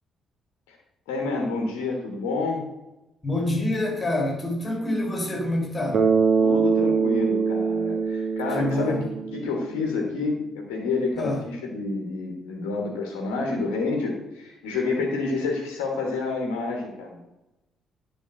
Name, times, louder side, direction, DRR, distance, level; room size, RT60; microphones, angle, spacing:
voice 1, 1.1-2.6 6.4-9.0 9.3-17.2, left 3 dB, 70° left, 1 dB, 1.2 m, -29 dB
voice 2, 3.2-6.1 8.5-9.1 11.1-11.5, left 1 dB, 25° left, 1 dB, 2.7 m, -26 dB
Bass guitar, 5.9-9.9, right 5 dB, 50° right, 1.2 m, -23 dB
10.5 x 5.3 x 3.7 m, 0.97 s
figure-of-eight pair, 45°, 0 cm